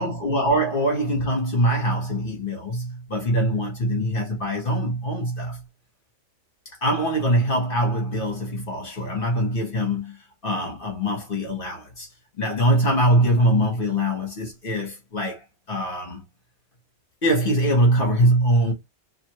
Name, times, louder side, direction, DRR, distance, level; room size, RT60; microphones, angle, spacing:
voice 1, 0.0-5.6 6.8-12.1 12.4-16.2 17.2-18.7, equal, 50° left, 1.3 m, -23 dB
2.6 x 2.5 x 2.8 m
omnidirectional pair, 1.2 m